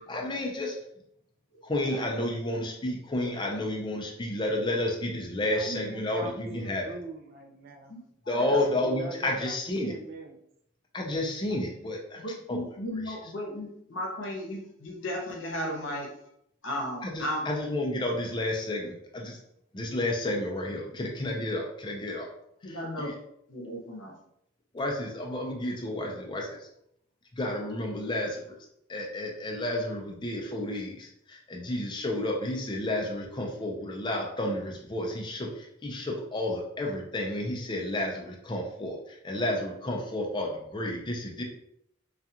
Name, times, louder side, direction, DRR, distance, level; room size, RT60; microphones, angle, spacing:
voice 1, 0.1-0.8 1.6-6.8 8.3-9.9 10.9-12.2 12.5-12.6 13.1-13.2 17.0-19.4 19.7-22.3 22.7-23.1 24.7-26.7 27.3-28.4 28.9-41.4, left 1 dB, 25° left, 0 dB, 0.5 m, -31 dB
voice 2, 5.4-7.9 8.7-10.4, right 2 dB, 50° right, 4 dB, 0.4 m, -43 dB
voice 3, 7.9-8.6 12.2-16.1 16.6-17.4 17.7-17.8 22.6-23.1 23.5-24.1, equal, 75° left, -1 dB, 0.8 m, -35 dB
2.4 x 2.3 x 2.7 m, 0.74 s
head